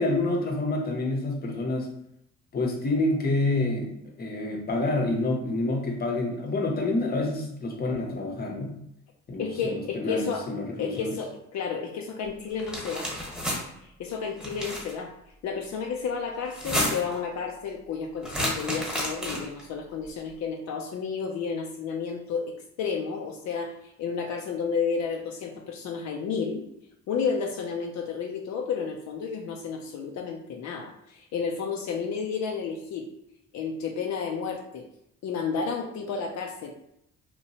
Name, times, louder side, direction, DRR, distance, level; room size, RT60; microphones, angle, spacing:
voice 1, 0.0-1.9 2.5-8.7 9.3-11.1, left 2 dB, 30° left, 1 dB, 0.7 m, -28 dB
voice 2, 9.4-10.5 10.8-13.1 13.8-15.1 15.4-26.6 27.1-33.1 33.5-34.9 35.2-36.7, left 5 dB, 65° left, 2 dB, 0.4 m, -31 dB
sound 1, 12.6-13.6 14.4-14.9 16.5-17.2 18.2-19.6, equal, ahead, 1.1 m, -30 dB
2.8 x 2.2 x 2.8 m, 0.78 s
cardioid pair, 90°, 30 cm